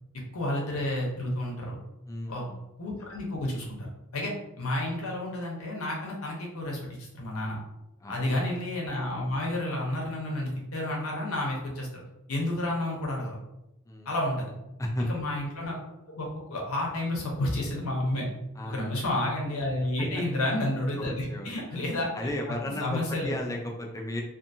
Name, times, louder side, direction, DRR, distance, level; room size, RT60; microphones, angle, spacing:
voice 1, 0.3-1.8 2.3-2.4 2.8-3.9 4.1-6.8 7.1-7.6 8.1-12.0 12.3-13.4 14.1-14.5 15.1-15.8 16.1-18.3 18.7-22.1 22.5-23.4, left 1 dB, 85° left, -1 dB, 0.8 m, -30 dB
voice 2, 2.1-2.6 8.0-8.5 13.9-14.5 14.8-15.1 18.5-18.8 20.0-20.2 21.0-21.5 22.1-24.2, left 1 dB, 15° left, 1 dB, 0.4 m, -35 dB
2.6 x 2.5 x 2.6 m, 0.91 s
head